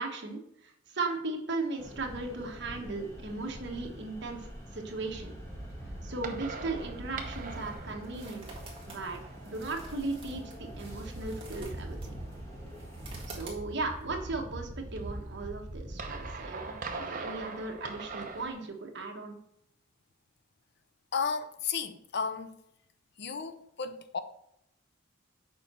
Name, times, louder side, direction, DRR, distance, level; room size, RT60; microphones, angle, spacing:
voice 1, 0.0-5.3 6.0-8.5 8.9-12.0 13.3-19.4, right 3 dB, 60° right, 1.2 m, -37 dB
sound 1, 1.8-13.3, equal, 15° left, 1.6 m, -47 dB
sound 2, 5.1-18.5, right 2 dB, 40° right, 0.9 m, -42 dB
sound 3, 6.8-14.0, right 3 dB, 25° right, 1.8 m, -51 dB
voice 2, 21.1-22.6 23.2-24.2, left 5 dB, 55° left, 0.6 m, -33 dB
6.9 x 4.9 x 4.3 m
head